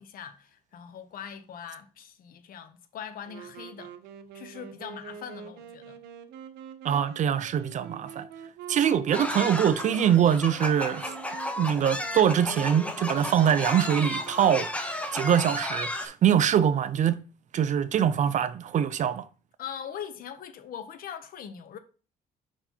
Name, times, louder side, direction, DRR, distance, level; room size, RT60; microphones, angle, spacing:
voice 1, 0.0-3.9 4.3-6.0 19.6-21.8, left 8 dB, 60° left, 0.9 m, -41 dB
Wind instrument woodwind instrument, 3.2-15.0, right 7 dB, 80° right, 0.8 m, -45 dB
voice 2, 6.8-8.3 8.7-11.1 11.6-17.2 17.5-19.3, right 9 dB, 45° right, 0.5 m, -24 dB
sound 1, 9.1-16.1, left 1 dB, 5° left, 0.9 m, -33 dB
5.3 x 4.6 x 4.4 m
cardioid pair, 110°, 17 cm